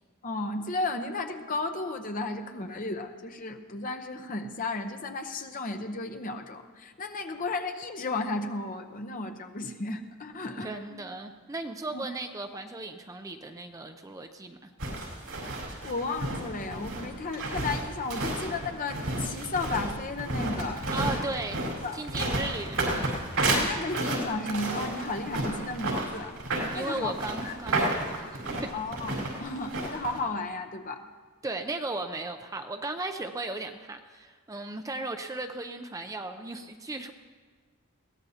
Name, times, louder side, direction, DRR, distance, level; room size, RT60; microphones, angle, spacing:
voice 1, 0.2-11.0 11.9-12.0 15.8-21.2 21.8-22.3 23.5-26.3 26.7-27.1 27.4-27.5 28.7-31.0, left 3 dB, 40° left, 6 dB, 0.8 m, -34 dB
voice 2, 10.6-14.7 20.9-21.7 21.9-23.2 26.7-28.7 31.4-37.1, right 2 dB, 15° right, 6 dB, 0.5 m, -36 dB
sound 1, 14.8-30.2, right 2 dB, 85° right, 4.4 m, -31 dB
21.5 x 16.5 x 2.8 m, 1.5 s
head